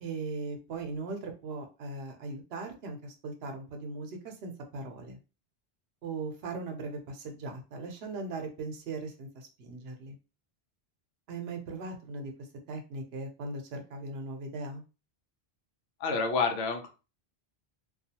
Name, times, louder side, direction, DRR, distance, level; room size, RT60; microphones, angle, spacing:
voice 1, 0.0-5.2 6.0-10.2 11.3-12.3 12.7-14.8, right 3 dB, 75° right, 4 dB, 0.9 m, -39 dB
voice 2, 16.0-16.9, left 4 dB, 85° left, 4 dB, 0.8 m, -28 dB
2.3 x 2.3 x 2.7 m, 0.32 s
omnidirectional pair, 1.1 m